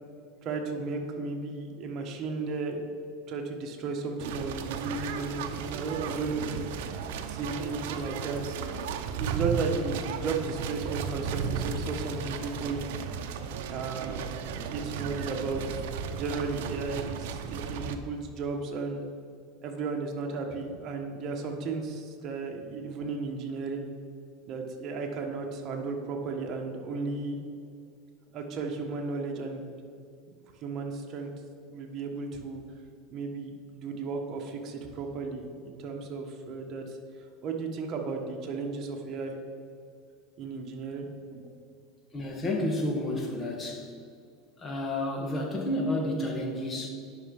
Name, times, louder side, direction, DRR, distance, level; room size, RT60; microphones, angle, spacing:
voice 1, 0.4-2.8 3.3-8.4 9.1-12.8 13.7-15.8 16.1-19.0 19.6-23.9 24.4-27.4 28.3-29.7 30.6-31.3 31.7-32.6 33.1-37.0 37.4-39.3 40.4-41.1 41.3-41.5, right 4 dB, 40° right, 2 dB, 1.4 m, -34 dB
sound 1, 4.2-17.9, right 6 dB, 75° right, 0.7 m, -35 dB
voice 2, 42.1-43.9 44.6-46.9, left 1 dB, 25° left, 2 dB, 1.6 m, -30 dB
10.0 x 5.9 x 5.4 m, 2.4 s
supercardioid pair, 135°, 0 cm